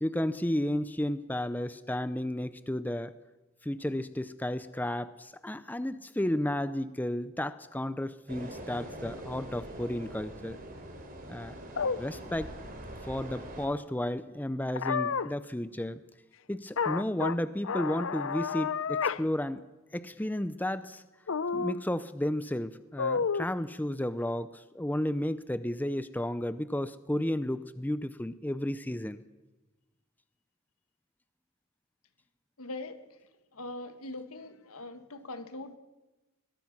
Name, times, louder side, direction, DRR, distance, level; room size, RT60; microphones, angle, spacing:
voice 1, 0.0-3.1 3.6-10.6 11.3-11.6 12.0-12.5 13.0-16.0 16.5-19.6 19.9-21.0 21.5-29.2, left 1 dB, 10° left, 13 dB, 0.6 m, -33 dB
sound 1, 8.3-13.7, right 1 dB, 40° right, 3.4 m, -43 dB
sound 2, 11.8-12.0 14.8-15.3 16.8-17.4 17.6-19.2 19.6-19.7 21.3-21.8 23.0-23.5, left 5 dB, 65° left, 0.6 m, -30 dB
voice 2, 32.6-33.0 33.5-35.8, left 2 dB, 85° left, 10 dB, 1.6 m, -41 dB
21.5 x 21.0 x 6.1 m, 1.1 s
head